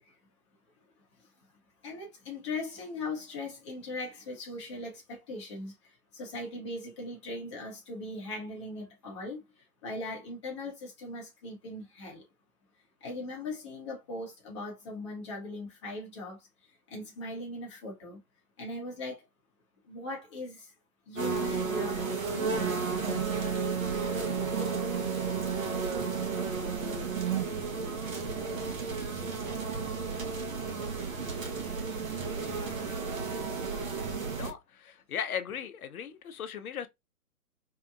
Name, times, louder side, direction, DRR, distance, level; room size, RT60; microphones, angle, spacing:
voice 1, 1.8-5.7 6.1-9.4 9.8-12.2 13.0-16.4 16.9-18.2 18.6-19.2 19.9-20.7 21.1-22.9, left 2 dB, 20° left, 0.7 m, -39 dB
sound 1, 21.2-34.5, right 5 dB, 60° right, 0.9 m, -33 dB
Wind instrument woodwind instrument, 23.1-27.2, right 8 dB, 90° right, 0.5 m, -35 dB
voice 2, 34.3-36.9, left 8 dB, 70° left, 0.5 m, -37 dB
2.7 x 2.1 x 2.3 m
figure-of-eight pair, 135°, 45 cm